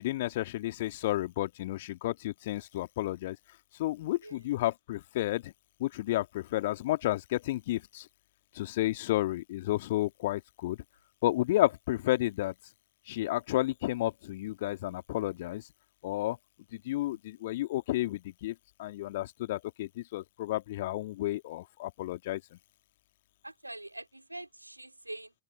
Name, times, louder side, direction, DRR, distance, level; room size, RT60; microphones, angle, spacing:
voice 1, 0.0-3.4 3.8-5.5 5.8-8.1 8.5-10.8 11.2-12.5 13.1-15.6 16.0-16.4 16.7-22.4, left 16 dB, 55° left, 2.3 m, -31 dB
voice 2, 23.4-25.3, right 1 dB, 85° right, 2.8 m, -44 dB
open air
figure-of-eight pair, 90°, 0 cm